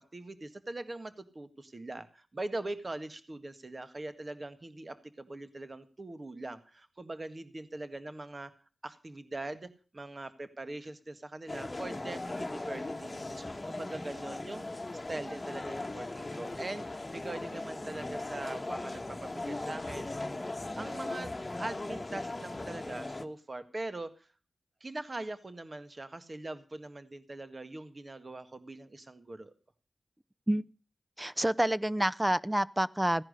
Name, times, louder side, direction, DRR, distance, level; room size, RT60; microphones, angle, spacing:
voice 1, 0.0-8.5 8.8-20.1 20.7-21.3 21.6-24.3 24.8-29.5, right 2 dB, 35° right, 11 dB, 1.6 m, -42 dB
sound 1, 11.5-23.3, left 2 dB, 25° left, 1.3 m, -38 dB
voice 2, 31.2-33.2, right 1 dB, 10° right, 16 dB, 0.7 m, -28 dB
16.0 x 10.5 x 6.5 m, 0.36 s
wide cardioid pair, 75°, 0 cm